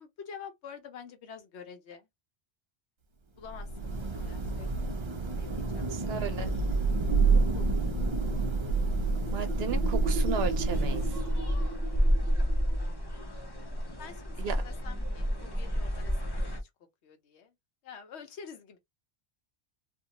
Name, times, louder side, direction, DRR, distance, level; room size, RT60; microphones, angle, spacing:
voice 1, 0.0-2.1 3.4-6.4 7.3-7.7 8.0-8.1 14.0-16.7 17.0-17.5 17.8-18.8, left 6 dB, 70° left, 1.0 m, -48 dB
Thunder / Rain, 3.5-11.5, right 4 dB, 45° right, 0.3 m, -29 dB
voice 2, 5.9-6.5 9.3-11.2 14.4-14.6, right 6 dB, 65° right, 0.8 m, -34 dB
sound 1, 8.0-13.0, right 1 dB, 5° right, 1.1 m, -34 dB
sound 2, 10.7-16.6, equal, 25° left, 0.6 m, -30 dB
2.5 x 2.2 x 2.8 m
omnidirectional pair, 1.2 m